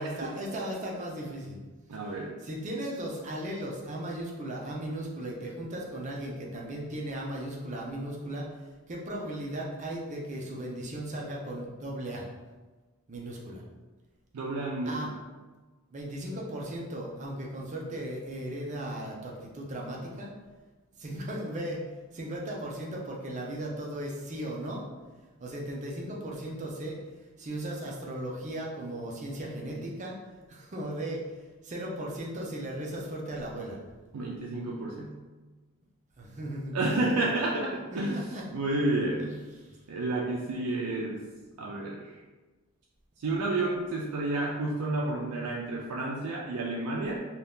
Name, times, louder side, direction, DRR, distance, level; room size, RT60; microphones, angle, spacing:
voice 1, 0.0-1.6 1.9-2.0 2.4-8.5 8.9-12.3 13.1-13.6 14.8-15.1 15.9-20.3 21.0-21.9 22.1-24.9 25.4-27.0 27.4-30.2 30.5-31.3 31.6-33.8 36.2-37.2 37.9-38.4 39.2-39.3 39.6-39.8 41.6-41.7, right 1 dB, 35° right, -2 dB, 0.5 m, -36 dB
voice 2, 1.9-2.4 14.3-15.1 34.1-35.2 36.7-38.3 38.5-39.4 39.9-41.2 41.6-42.1 43.2-47.2, right 2 dB, 85° right, -3 dB, 0.4 m, -30 dB
2.7 x 2.3 x 3.5 m, 1.3 s
head